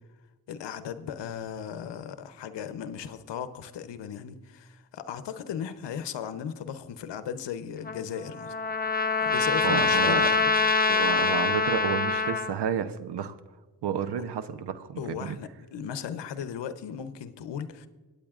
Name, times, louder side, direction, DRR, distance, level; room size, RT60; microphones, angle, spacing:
voice 1, 0.5-8.5 9.2-10.7 15.0-17.9, left 8 dB, 75° left, 0.8 m, -36 dB
Trumpet, 7.8-12.5, left 4 dB, 20° left, 0.7 m, -25 dB
voice 2, 9.6-10.3 10.9-13.3 13.8-15.4, right 8 dB, 70° right, 0.8 m, -31 dB
25.5 x 8.6 x 2.4 m
cardioid pair, 55°, 43 cm